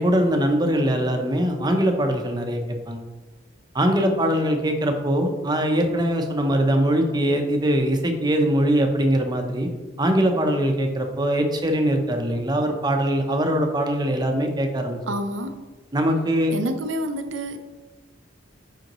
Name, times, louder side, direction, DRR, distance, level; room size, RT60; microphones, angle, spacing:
voice 1, 0.0-3.0 3.7-9.7 10.0-15.0 15.9-16.5, right 1 dB, 20° right, 4 dB, 0.7 m, -22 dB
voice 2, 15.1-15.5 16.5-17.6, right 1 dB, 75° right, 7 dB, 0.6 m, -28 dB
7.8 x 5.0 x 3.0 m, 1.2 s
head